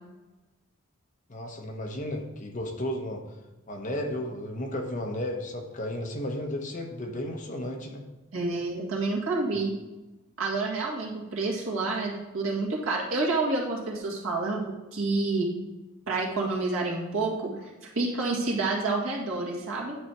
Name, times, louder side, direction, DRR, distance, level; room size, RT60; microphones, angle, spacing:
voice 1, 1.3-3.2 3.7-8.0, left 1 dB, 35° left, 2 dB, 1.0 m, -33 dB
voice 2, 8.3-9.7 10.4-15.5 16.1-17.7 18.0-20.0, right 3 dB, 70° right, -3 dB, 1.9 m, -28 dB
9.9 x 4.2 x 4.6 m, 1.1 s
head